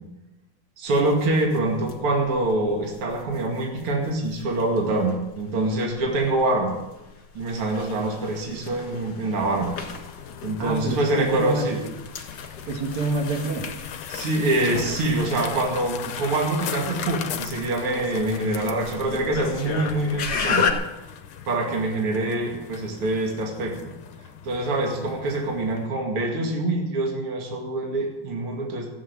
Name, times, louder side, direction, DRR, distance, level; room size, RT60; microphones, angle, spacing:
voice 1, 0.8-6.8 7.3-9.8 10.4-11.8 14.1-20.6 21.5-23.8 24.4-28.9, right 2 dB, 50° right, 0 dB, 3.2 m, -25 dB
sound 1, 0.9-20.7, left 6 dB, 45° left, 1.9 m, -34 dB
sound 2, 9.4-25.9, left 8 dB, 65° left, 1.4 m, -39 dB
voice 2, 10.6-11.9 12.7-13.7, right 3 dB, 65° right, 3 dB, 3.2 m, -27 dB
15.5 x 8.3 x 8.8 m, 0.98 s
omnidirectional pair, 3.4 m